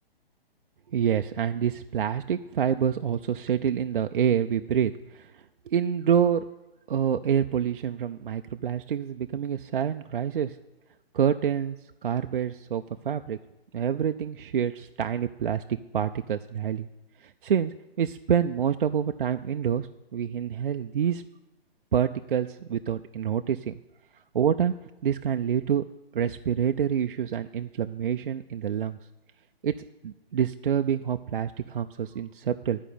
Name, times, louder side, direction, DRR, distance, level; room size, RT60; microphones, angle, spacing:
voice 1, 0.9-5.3 5.7-6.4 6.9-10.6 11.1-11.8 12.0-13.4 13.7-16.9 17.2-21.2 21.9-23.7 24.3-24.7 25.0-25.8 26.1-29.0 29.6-29.7 30.0-32.8, right 8 dB, 60° right, 8 dB, 0.5 m, -27 dB
11.0 x 5.1 x 8.5 m, 0.98 s
hypercardioid pair, 170°, 30 cm